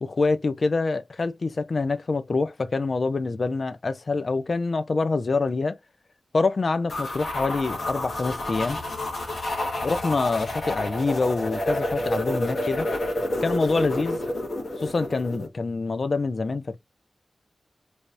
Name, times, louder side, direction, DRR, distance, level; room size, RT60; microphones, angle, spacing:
voice 1, 0.0-5.8 6.3-8.8 9.8-12.9 13.4-14.2 14.8-16.8, left 3 dB, 55° left, 0.6 m, -26 dB
sound 1, 6.9-15.5, left 1 dB, 75° left, 1.7 m, -29 dB
3.4 x 3.1 x 2.6 m
wide cardioid pair, 70°, 0 cm